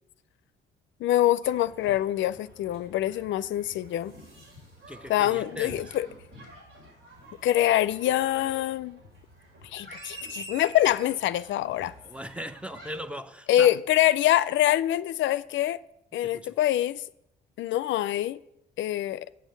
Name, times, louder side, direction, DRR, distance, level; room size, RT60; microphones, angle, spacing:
voice 1, 1.0-4.1 5.1-6.1 7.4-9.0 9.7-11.9 13.5-15.8 16.1-17.0 17.6-18.4 18.8-19.3, left 13 dB, 75° left, 0.4 m, -25 dB
sound 1, 1.4-13.0, right 1 dB, 85° right, 4.9 m, -48 dB
voice 2, 4.9-5.9 12.1-13.7 16.2-16.5, equal, 5° right, 0.5 m, -38 dB
7.7 x 6.3 x 7.9 m
cardioid pair, 90°, 20 cm